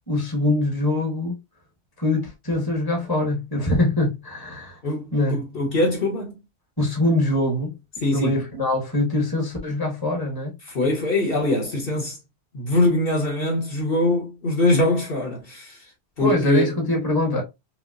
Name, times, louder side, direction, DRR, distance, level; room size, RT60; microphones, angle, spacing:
voice 1, 0.1-1.4 2.0-4.8 5.1-5.4 6.8-7.7 8.1-10.5 16.2-17.4, left 1 dB, 20° left, 1.2 m, -23 dB
voice 2, 5.5-6.4 8.0-8.4 10.6-12.2 12.5-15.9 16.2-16.7, left 1 dB, 55° left, 1.4 m, -22 dB
5.6 x 2.0 x 2.6 m
omnidirectional pair, 1.1 m